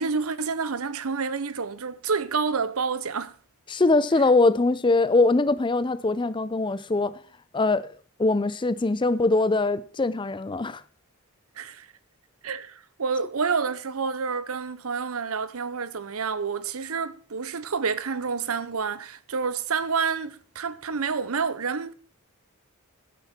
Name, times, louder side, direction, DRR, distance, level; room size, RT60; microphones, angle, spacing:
voice 1, 0.0-3.3 11.6-11.9 12.4-21.9, right 5 dB, 75° right, 0.9 m, -28 dB
voice 2, 3.7-7.2 7.5-7.9 8.2-10.8, left 3 dB, 20° left, 0.5 m, -22 dB
16.0 x 9.2 x 4.4 m
head